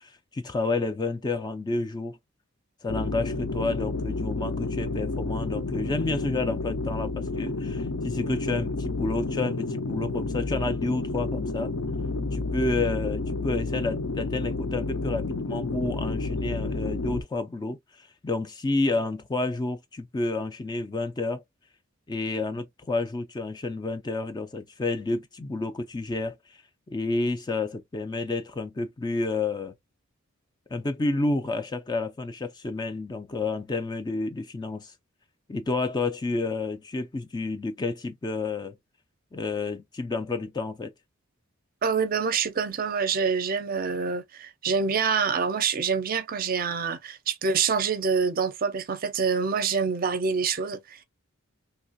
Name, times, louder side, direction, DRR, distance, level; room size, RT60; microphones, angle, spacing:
voice 1, 0.0-2.2 2.8-11.7 12.3-21.4 22.1-26.4 26.9-29.7 30.7-34.9 35.5-38.8 39.3-40.9, left 3 dB, 20° left, 0.3 m, -30 dB
sound 1, 2.9-17.2, left 3 dB, 70° left, 0.6 m, -30 dB
voice 2, 41.8-51.0, right 5 dB, 45° right, 0.5 m, -26 dB
3.1 x 2.3 x 2.5 m
head